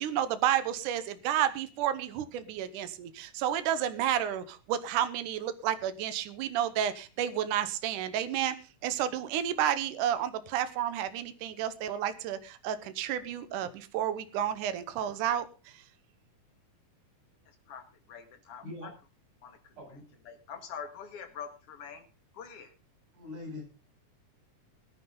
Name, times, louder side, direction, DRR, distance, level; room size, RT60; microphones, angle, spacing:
voice 1, 0.0-8.6 8.8-15.8, right 10 dB, 75° right, 12 dB, 2.4 m, -31 dB
voice 2, 17.7-18.6 19.4-19.6 20.3-22.0 22.3-22.7, left 7 dB, 50° left, 5 dB, 2.7 m, -44 dB
voice 3, 18.6-18.9 19.8-20.1 23.1-23.6, left 2 dB, 40° right, -1 dB, 8.6 m, -42 dB
19.0 x 10.5 x 3.9 m, 0.33 s
omnidirectional pair, 3.8 m